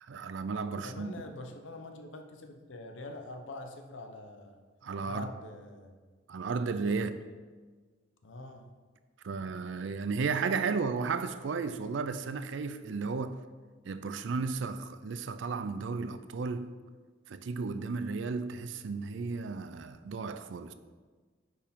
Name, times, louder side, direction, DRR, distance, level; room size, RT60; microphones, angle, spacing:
voice 1, 0.0-1.1 4.8-5.3 6.3-7.2 9.2-13.4 13.8-16.7 17.3-20.7, right 4 dB, 75° right, 0.4 m, -34 dB
voice 2, 0.7-4.6 5.0-5.9 7.0-7.3 8.2-8.7, left 2 dB, 80° left, 0.8 m, -45 dB
9.7 x 4.6 x 3.6 m
head